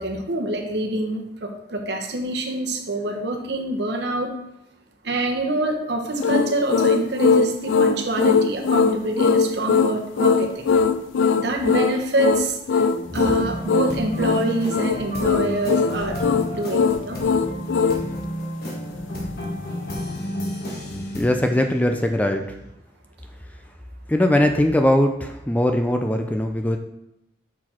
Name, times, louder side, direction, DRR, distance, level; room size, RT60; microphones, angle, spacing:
voice 1, 0.0-4.3 5.0-10.6 11.4-12.6 13.1-16.2 16.5-17.2, right 2 dB, 65° right, 3 dB, 0.9 m, -26 dB
sound 1, 6.2-18.0, left 5 dB, 85° left, 0.4 m, -20 dB
sound 2, 12.9-22.5, equal, 55° left, 1.3 m, -31 dB
voice 2, 21.1-22.4 24.1-26.8, left 1 dB, 10° left, 4 dB, 0.3 m, -20 dB
6.0 x 4.6 x 4.3 m, 0.86 s
head